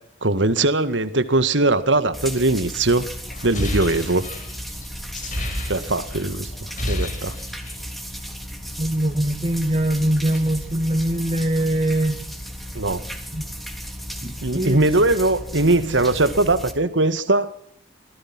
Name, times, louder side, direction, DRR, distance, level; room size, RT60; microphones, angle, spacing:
voice 1, 0.2-3.1 3.4-4.3 5.7-6.5 6.9-7.4 12.7-13.0 14.4-17.5, right 2 dB, 75° right, 13 dB, 1.9 m, -20 dB
sound 1, 2.1-16.7, equal, ahead, 3.3 m, -35 dB
sound 2, 3.3-6.2 6.5-7.9, left 1 dB, 45° left, 5.4 m, -29 dB
voice 2, 8.8-12.2 13.3-13.4 14.2-14.8, right 1 dB, 30° right, 3 dB, 2.0 m, -22 dB
25.5 x 18.0 x 6.1 m, 0.67 s
head